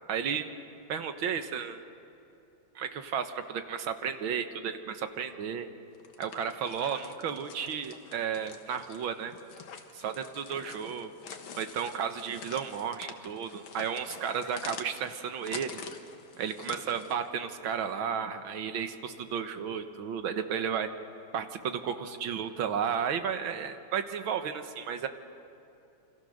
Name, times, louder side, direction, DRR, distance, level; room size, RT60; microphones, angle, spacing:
voice 1, 0.1-0.5 0.9-1.8 2.8-5.7 6.2-9.3 9.9-11.1 11.6-15.8 16.4-20.9 21.3-25.1, right 7 dB, 85° right, 8 dB, 2.0 m, -33 dB
sound 1, 5.9-17.3, left 6 dB, 85° left, 2.2 m, -46 dB
28.0 x 26.0 x 6.5 m, 2.8 s
omnidirectional pair, 2.1 m